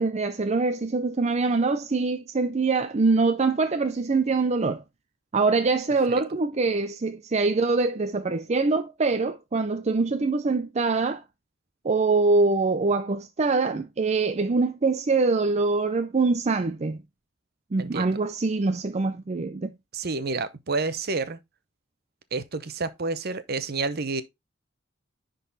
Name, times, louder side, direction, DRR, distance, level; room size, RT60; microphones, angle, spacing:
voice 1, 0.0-4.8 5.3-11.2 11.8-17.0 17.7-19.7, right 3 dB, 35° right, 0.5 m, -24 dB
voice 2, 17.8-18.2 19.9-21.4 22.3-24.2, right 3 dB, 55° right, 0.8 m, -29 dB
10.5 x 3.9 x 4.0 m
head